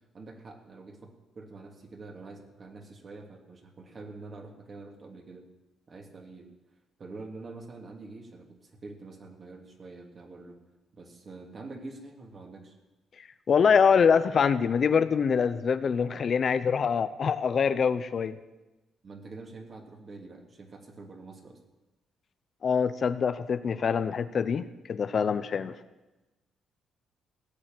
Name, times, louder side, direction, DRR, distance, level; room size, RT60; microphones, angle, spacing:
voice 1, 0.1-5.5 5.9-6.5 7.0-10.6 10.9-12.8 19.0-21.6, right 3 dB, 40° right, 3 dB, 2.7 m, -46 dB
voice 2, 13.5-18.4 22.6-25.7, left 6 dB, 50° left, 12 dB, 0.7 m, -24 dB
16.5 x 7.0 x 9.5 m, 1.1 s
cardioid pair, 90°, 0 cm